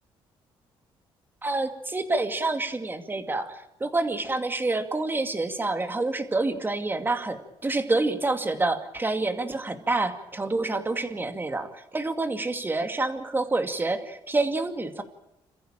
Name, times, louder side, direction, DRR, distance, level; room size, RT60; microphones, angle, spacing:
voice 1, 1.4-15.0, right 2 dB, 20° right, 8 dB, 2.4 m, -28 dB
27.0 x 15.0 x 9.0 m, 0.88 s
cardioid pair, 95°, 10 cm